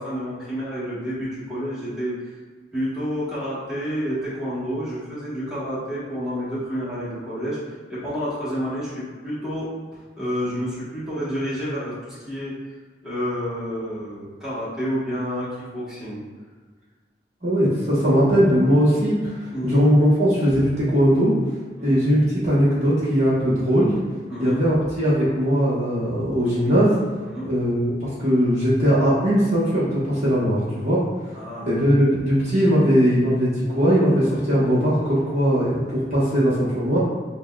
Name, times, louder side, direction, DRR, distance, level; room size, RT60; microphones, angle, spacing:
voice 1, 0.0-2.3 2.7-12.6 13.0-16.2 19.5-19.9 21.8-22.0 24.3-24.6 25.0-25.1 27.2-27.5 31.3-31.7, equal, 5° right, -11 dB, 1.1 m, -29 dB
voice 2, 17.4-21.4 21.8-23.9 24.4-26.9 27.4-31.0 31.6-37.0, equal, 35° right, -9 dB, 1.1 m, -19 dB
6.4 x 2.1 x 2.3 m, 1.5 s
head